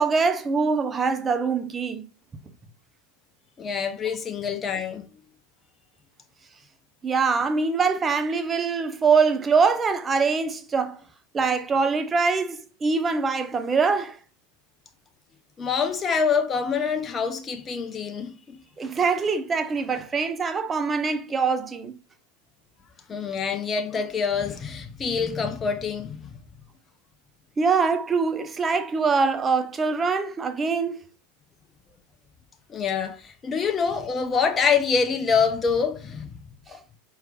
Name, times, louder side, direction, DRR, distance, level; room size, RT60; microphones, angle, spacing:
voice 1, 0.0-2.0 7.0-11.0 11.3-14.2 18.8-21.9 27.6-31.0, right 5 dB, 25° right, 0.6 m, -23 dB
voice 2, 3.6-5.0 15.6-18.6 23.1-26.3 32.7-36.3 36.7-36.8, left 6 dB, 25° left, 0.5 m, -26 dB
4.7 x 4.4 x 2.3 m
hypercardioid pair, 85°, 0 cm